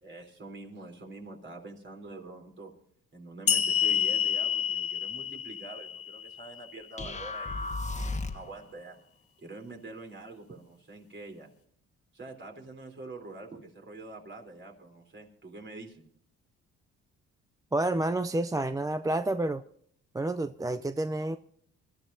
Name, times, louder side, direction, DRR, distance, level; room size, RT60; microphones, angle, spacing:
voice 1, 0.0-2.7 3.1-9.0 9.4-11.5 12.1-16.0, right 2 dB, 40° right, 3 dB, 3.6 m, -45 dB
sound 1, 3.5-6.8, left 8 dB, 50° left, 0.9 m, -29 dB
sound 2, 7.0-8.6, left 2 dB, 25° left, 1.3 m, -34 dB
voice 2, 17.7-19.6 20.1-21.4, right 2 dB, 10° right, 11 dB, 0.4 m, -29 dB
25.0 x 13.5 x 2.7 m, 0.64 s
cardioid pair, 90°, 30 cm